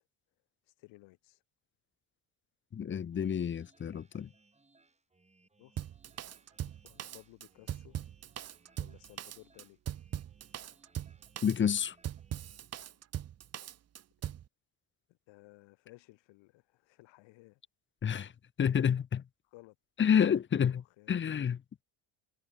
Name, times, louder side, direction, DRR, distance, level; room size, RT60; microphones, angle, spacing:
voice 1, 0.6-1.4 5.6-5.9 6.8-8.0 8.8-9.8 15.1-17.6 19.4-19.7 20.7-21.1, left 22 dB, 75° left, 4.4 m, -57 dB
voice 2, 2.7-4.3 11.4-11.9 18.0-18.3 18.6-19.2 20.0-20.8 21.1-21.8, left 8 dB, 25° left, 0.9 m, -29 dB
sound 1, 3.1-12.6, right 3 dB, 15° right, 6.9 m, -68 dB
Drum kit, 5.8-14.5, right 10 dB, 35° right, 0.9 m, -40 dB
cardioid pair, 115°, 45 cm